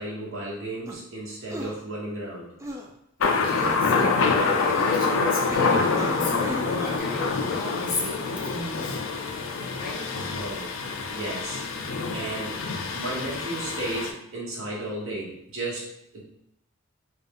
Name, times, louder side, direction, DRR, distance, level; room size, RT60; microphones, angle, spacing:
voice 1, 0.0-2.5 10.3-10.8 11.1-11.6 12.1-12.6 12.9-16.2, right 1 dB, 70° right, -5 dB, 1.3 m, -34 dB
sound 1, 0.8-1.0 1.5-1.8 2.6-2.9 3.5-3.8 4.7-5.0 5.5-7.0, equal, 15° right, 0.3 m, -36 dB
Thunder, 3.2-14.1, left 4 dB, 70° left, 0.4 m, -26 dB
voice 2, 3.4-9.0 9.8-10.0, left 2 dB, 40° left, -2 dB, 0.9 m, -34 dB
3.5 x 2.4 x 3.6 m, 0.77 s
head